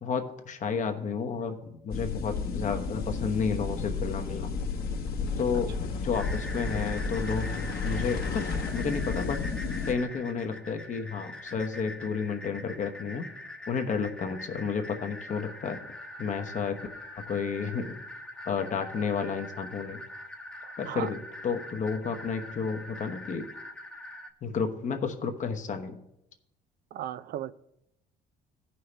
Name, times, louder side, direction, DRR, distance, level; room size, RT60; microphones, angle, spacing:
voice 1, 0.0-4.5 5.4-5.7 6.0-7.5 7.8-9.4 9.9-13.3 13.7-15.8 16.2-16.8 17.2-18.0 18.5-20.0 20.8-21.2 21.4-23.5 24.4-26.0, left 5 dB, 50° left, 6 dB, 1.1 m, -31 dB
sound 1, 1.9-9.9, left 4 dB, 65° left, 1.4 m, -32 dB
sound 2, 6.1-24.3, left 1 dB, 5° left, 1.0 m, -43 dB
voice 2, 20.6-21.1 26.9-27.5, right 12 dB, 65° right, 15 dB, 0.4 m, -36 dB
15.5 x 5.7 x 3.3 m, 0.82 s
cardioid pair, 110°, 17 cm